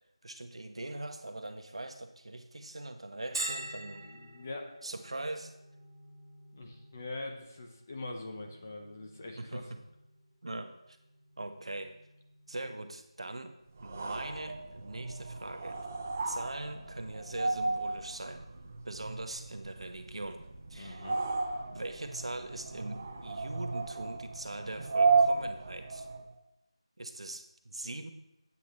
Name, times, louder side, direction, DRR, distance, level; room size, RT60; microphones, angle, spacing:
voice 1, 0.2-4.1 4.8-5.5 9.4-9.8 10.4-11.0 11.4-12.0 12.5-13.5 13.8-15.8 16.2-18.5 18.8-20.4 20.7-21.1 21.7-26.1 27.0-28.1, right 2 dB, 65° right, 6 dB, 0.9 m, -41 dB
Bell, 3.3-18.8, right 2 dB, 45° right, 1.1 m, -48 dB
voice 2, 4.0-4.7 6.5-9.6 20.7-21.2, left 2 dB, 25° left, 2 dB, 0.7 m, -43 dB
sound 1, 13.8-26.3, right 4 dB, 15° right, 0.4 m, -33 dB
8.4 x 8.3 x 3.1 m, 0.87 s
figure-of-eight pair, 175°, 3 cm